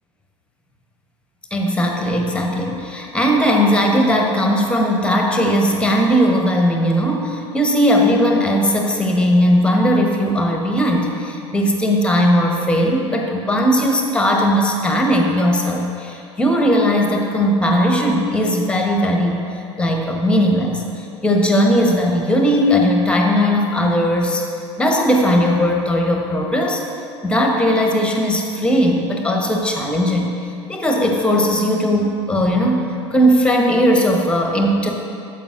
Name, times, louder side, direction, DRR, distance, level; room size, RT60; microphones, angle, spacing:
voice 1, 1.5-19.4 19.8-24.4 24.8-26.8 27.2-30.4 30.7-32.9 33.1-34.9, equal, 5° left, 2 dB, 0.8 m, -18 dB
9.0 x 6.9 x 2.5 m, 2.6 s
figure-of-eight pair, 80°, 15 cm